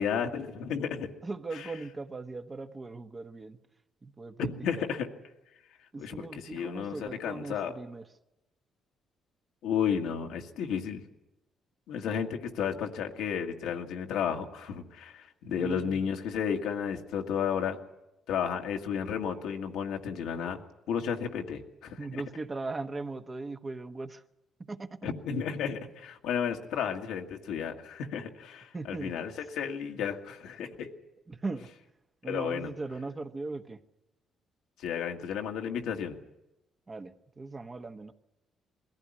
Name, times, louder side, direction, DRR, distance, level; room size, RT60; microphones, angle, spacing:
voice 1, 0.0-1.1 1.5-1.6 4.4-5.1 6.0-7.7 9.6-11.0 11.9-17.8 18.3-20.6 20.9-22.2 25.0-30.9 32.2-32.7 34.8-36.2, left 7 dB, 85° left, 3 dB, 1.7 m, -33 dB
voice 2, 1.2-3.6 4.0-4.9 5.9-8.0 15.6-16.1 22.0-24.2 24.6-25.1 28.7-29.1 31.3-31.7 32.2-33.8 36.9-38.1, right 3 dB, 30° right, 7 dB, 1.2 m, -39 dB
21.5 x 15.0 x 9.8 m, 0.95 s
cardioid pair, 85°, 0 cm